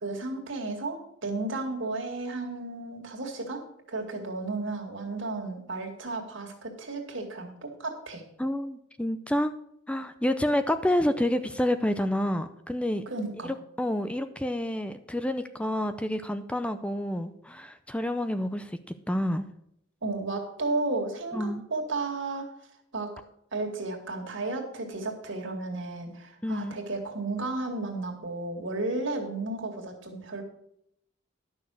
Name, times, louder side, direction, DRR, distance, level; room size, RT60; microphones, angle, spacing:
voice 1, 0.0-3.6 3.9-8.2 13.1-13.5 20.0-22.5 22.9-23.1 23.5-30.4, right 2 dB, 70° right, 2 dB, 2.3 m, -33 dB
voice 2, 8.4-9.5 9.9-13.0 13.8-18.8 19.1-19.5 21.3-21.6 26.4-26.8, left 1 dB, 5° left, 10 dB, 0.5 m, -28 dB
11.5 x 6.3 x 6.6 m, 0.74 s
head